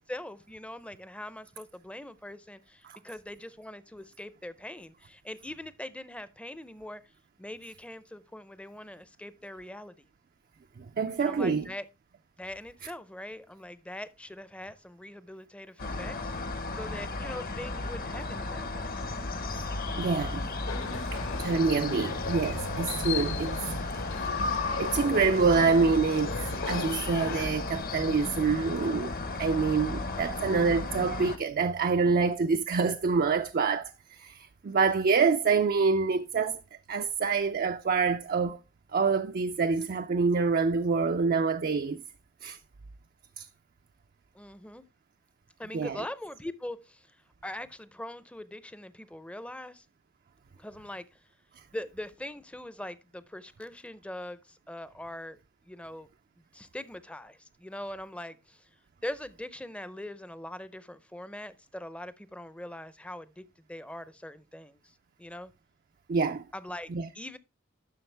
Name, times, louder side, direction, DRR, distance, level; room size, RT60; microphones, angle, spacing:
voice 1, 0.0-7.0 7.4-10.1 11.2-11.8 12.4-18.9 44.3-44.8 45.6-47.2 47.4-49.9 50.6-51.2 51.7-55.4 55.6-56.1 56.5-58.7 59.0-65.5 66.5-66.9 67.1-67.4, left 1 dB, 5° left, 0.6 m, -42 dB
voice 2, 10.8-11.7 19.5-19.7 20.0-20.5 21.1-23.9 24.7-36.6 36.9-38.6 38.9-42.0 42.4-42.6 43.4-43.5 45.7-46.0 66.1-66.4 66.9-67.1, right 4 dB, 45° right, 0.4 m, -26 dB
sound 1, 15.8-31.4, left 2 dB, 45° left, 0.9 m, -35 dB
sound 2, 20.7-27.5, left 4 dB, 70° left, 1.5 m, -35 dB
11.5 x 6.3 x 3.3 m
head